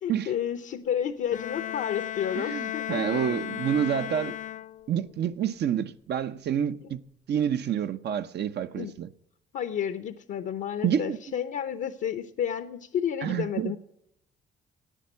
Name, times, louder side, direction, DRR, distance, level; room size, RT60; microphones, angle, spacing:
voice 1, 0.0-3.2 4.3-4.4 6.8-6.9 8.8-8.9 9.5-13.8, left 9 dB, 65° left, 0.8 m, -31 dB
Bowed string instrument, 1.3-5.1, left 12 dB, 40° left, 0.4 m, -35 dB
voice 2, 2.4-4.4 4.9-7.0 7.3-9.1 10.8-11.2 13.2-13.7, right 9 dB, 60° right, 0.7 m, -28 dB
10.0 x 8.7 x 9.2 m
supercardioid pair, 70°, 20 cm